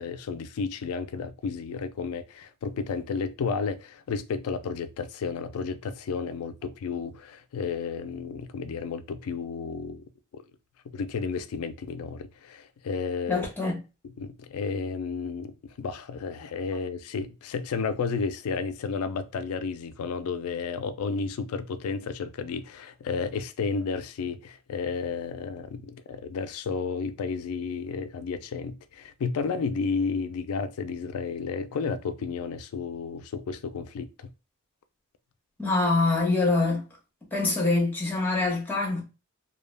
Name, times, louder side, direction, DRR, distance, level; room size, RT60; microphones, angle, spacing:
voice 1, 0.0-10.0 10.3-10.4 10.9-13.5 14.2-34.3, left 5 dB, 75° left, 0.4 m, -32 dB
voice 2, 13.3-13.8 35.6-36.9 37.3-39.0, left 3 dB, 10° left, 0.9 m, -24 dB
2.2 x 2.1 x 3.2 m
head